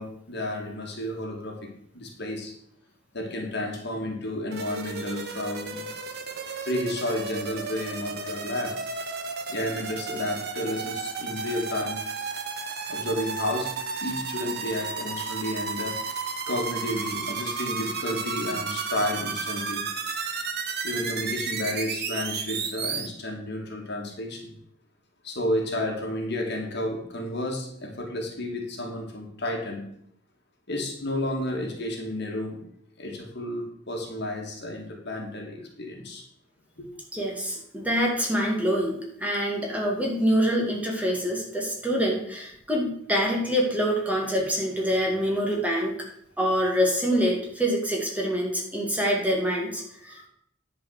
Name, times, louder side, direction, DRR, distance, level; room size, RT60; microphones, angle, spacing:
voice 1, 0.0-1.7 1.9-2.5 3.1-5.9 6.7-8.7 9.4-12.0 12.9-13.7 14.0-15.9 16.5-19.8 20.8-24.5 25.2-29.8 30.7-32.6 33.0-36.2 36.8-36.9, left 1 dB, 60° left, 1 dB, 2.2 m, -31 dB
sound 1, 4.5-23.1, right 5 dB, 55° right, 1.2 m, -33 dB
voice 2, 37.1-45.9 46.4-50.3, equal, 10° right, -2 dB, 2.3 m, -25 dB
10.5 x 5.1 x 6.6 m, 0.72 s
head